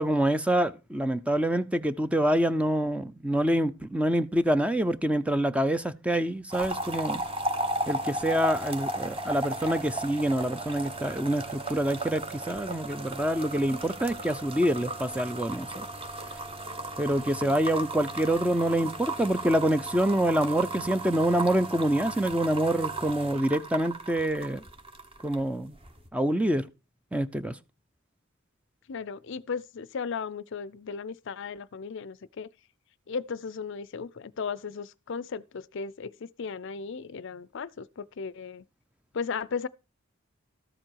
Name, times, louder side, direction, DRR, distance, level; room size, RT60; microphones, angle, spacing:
voice 1, 0.0-7.2 7.9-15.9 17.0-24.6 25.2-25.7 26.1-26.6 27.1-27.5, right 1 dB, 5° right, 0.5 m, -26 dB
sound 1, 6.5-25.5 25.7-26.1, right 2 dB, 25° right, 1.2 m, -35 dB
voice 2, 28.9-32.5 33.1-38.6 39.1-39.7, left 5 dB, 60° left, 0.5 m, -36 dB
13.0 x 7.5 x 4.6 m
head